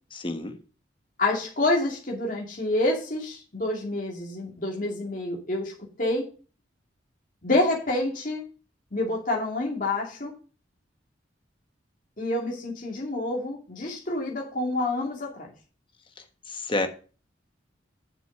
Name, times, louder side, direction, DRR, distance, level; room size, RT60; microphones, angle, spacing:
voice 1, 0.1-0.6 16.5-16.9, left 2 dB, 30° left, 6 dB, 1.3 m, -29 dB
voice 2, 1.2-6.3 7.4-8.4 8.9-10.3 12.2-15.5, left 2 dB, 45° left, -1 dB, 2.6 m, -28 dB
7.9 x 6.5 x 6.7 m, 0.38 s
head